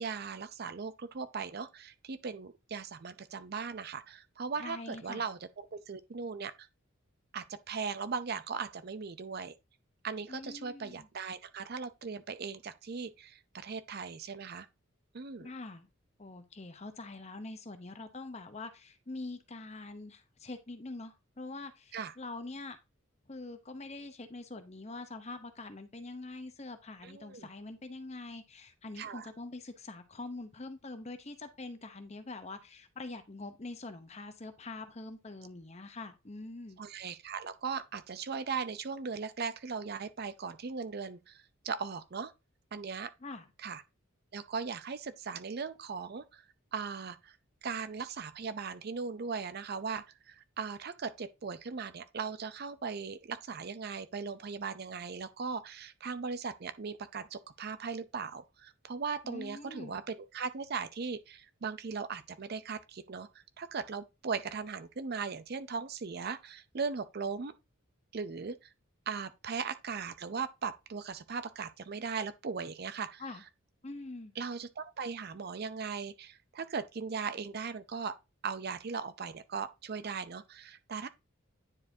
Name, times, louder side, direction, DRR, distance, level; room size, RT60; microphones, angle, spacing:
voice 1, 0.0-6.7 7.3-9.5 10.0-14.7 15.1-15.5 21.9-22.1 27.0-27.5 29.0-29.3 36.8-42.3 42.7-43.1 43.6-43.8 44.3-47.4 47.6-67.5 68.1-68.7 69.1-73.2 74.4-78.1 78.4-81.1, right 5 dB, 50° right, 0.5 m, -38 dB
voice 2, 4.6-5.2 10.3-11.1 15.4-15.9 16.2-22.8 23.3-36.8 43.2-43.5 59.2-59.9 73.2-73.4 73.8-74.3, left 2 dB, 30° left, 0.8 m, -44 dB
9.7 x 4.7 x 2.7 m
head